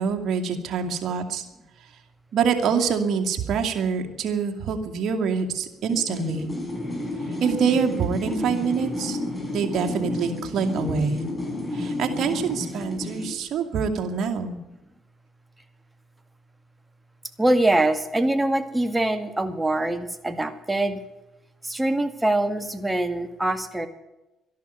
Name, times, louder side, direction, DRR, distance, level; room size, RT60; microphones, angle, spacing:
voice 1, 0.0-1.4 2.3-6.5 7.4-9.2 9.5-11.2 11.7-14.6, right 6 dB, 60° right, 3 dB, 2.4 m, -25 dB
sound 1, 5.9-13.4, left 2 dB, 20° left, 6.1 m, -31 dB
voice 2, 17.4-21.0 21.6-23.9, right 1 dB, 15° right, 9 dB, 2.0 m, -23 dB
13.0 x 11.5 x 9.2 m, 0.97 s
supercardioid pair, 65°, 0 cm